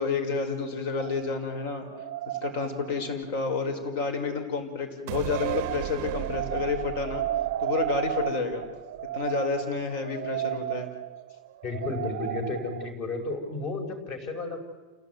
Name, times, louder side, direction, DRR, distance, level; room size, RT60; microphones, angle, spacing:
voice 1, 0.0-1.9 2.3-7.2 7.6-8.7 9.1-10.9, left 4 dB, 55° left, 6 dB, 5.2 m, -30 dB
sound 1, 1.0-3.3 5.2-12.9, right 13 dB, 80° right, 0.7 m, -34 dB
sound 2, 5.1-8.6 9.0-9.1, right 15 dB, 40° right, 0.7 m, -35 dB
voice 2, 11.6-14.6, left 3 dB, 35° left, 6 dB, 5.5 m, -32 dB
29.0 x 17.0 x 9.5 m, 1.4 s
supercardioid pair, 175°, 0 cm